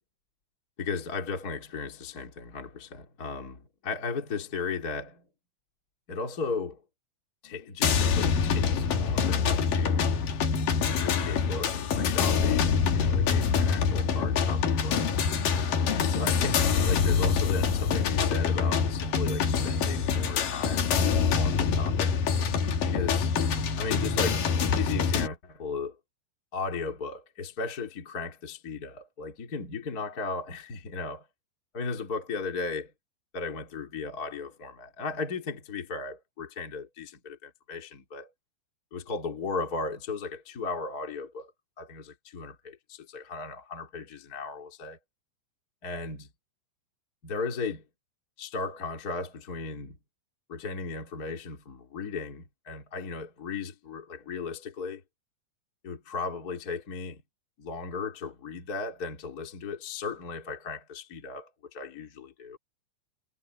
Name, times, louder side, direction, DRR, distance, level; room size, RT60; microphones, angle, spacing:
voice 1, 0.8-5.2 6.1-6.8 7.4-10.1 10.9-15.1 15.9-20.9 21.3-22.2 22.8-23.3 23.8-26.0 26.5-31.3 31.7-32.9 33.3-38.3 38.9-41.5 41.8-45.0 45.8-46.3 47.2-47.8 48.4-50.0 50.5-55.0 55.8-57.2 57.6-62.6, left 4 dB, 30° left, 1.9 m, -36 dB
sound 1, 7.8-25.3, left 6 dB, 55° left, 3.2 m, -25 dB
omnidirectional pair, 5.5 m